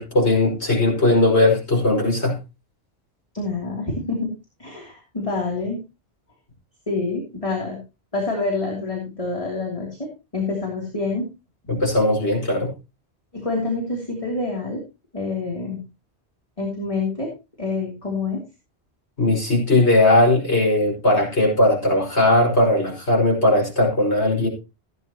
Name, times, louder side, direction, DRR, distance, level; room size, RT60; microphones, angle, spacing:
voice 1, 0.0-2.4 11.7-12.7 19.2-24.5, left 2 dB, 80° left, 5.7 m, -18 dB
voice 2, 3.3-4.3 4.6-5.8 6.9-7.8 8.1-11.3 13.3-14.8 15.1-15.9 16.6-17.3 17.6-18.4, left 3 dB, 30° left, 3.2 m, -27 dB
16.5 x 9.3 x 3.0 m
omnidirectional pair, 1.1 m